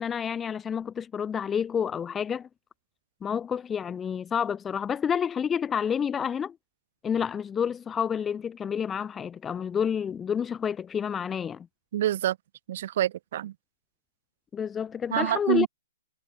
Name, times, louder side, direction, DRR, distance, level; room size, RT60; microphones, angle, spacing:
voice 1, 0.0-2.5 3.2-6.6 7.0-11.7 14.5-15.7, left 7 dB, 15° left, 1.1 m, -29 dB
voice 2, 11.9-12.4 12.7-13.5 15.1-15.7, right 12 dB, 55° right, 3.8 m, -26 dB
hypercardioid pair, 130°, 0 cm